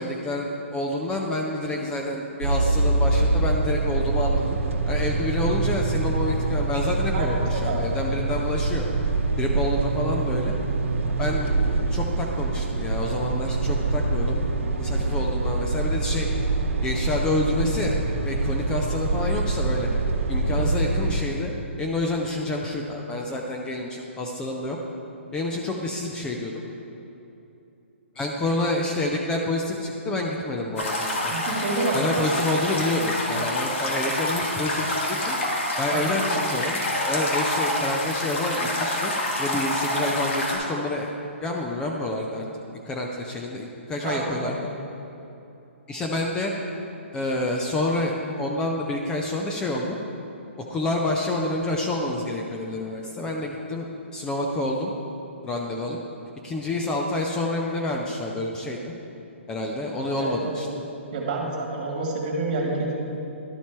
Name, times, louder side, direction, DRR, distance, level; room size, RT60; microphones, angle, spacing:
voice 1, 0.0-4.6 4.9-8.9 9.4-10.5 11.2-14.5 14.8-16.3 16.8-19.9 20.3-21.5 21.8-24.8 25.3-26.6 28.2-31.4 31.9-35.4 35.8-39.1 39.4-41.1 41.4-42.4 42.8-44.5 45.9-46.5 47.1-50.0 50.7-54.9 55.4-56.0 56.4-58.9 59.5-60.7, left 2 dB, 10° left, 0 dB, 0.4 m, -28 dB
sound 1, 2.4-21.2, right 3 dB, 75° right, 0.9 m, -25 dB
voice 2, 7.1-8.1 20.5-20.9 28.5-28.6 31.3-32.2 35.9-36.1 44.0-44.7 60.2-60.6 61.1-62.9, right 2 dB, 40° right, -1 dB, 1.7 m, -29 dB
sound 2, 30.8-40.6, left 1 dB, 70° left, 1.8 m, -27 dB
11.5 x 4.2 x 4.5 m, 2.9 s
hypercardioid pair, 155°, 7 cm